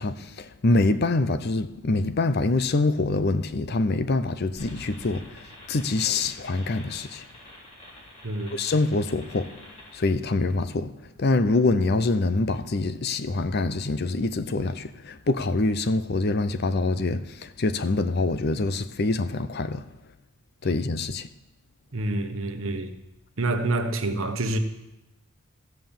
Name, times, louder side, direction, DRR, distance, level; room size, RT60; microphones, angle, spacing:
voice 1, 0.0-7.2 8.5-9.5 9.9-10.9 11.2-19.9 20.6-21.3, left 2 dB, 50° left, 0.6 m, -25 dB
sound 1, 4.6-10.1, left 1 dB, 30° left, 3.8 m, -46 dB
voice 2, 8.2-8.6 21.9-23.0 23.4-24.6, right 2 dB, 70° right, 1.1 m, -27 dB
15.0 x 5.7 x 7.2 m
head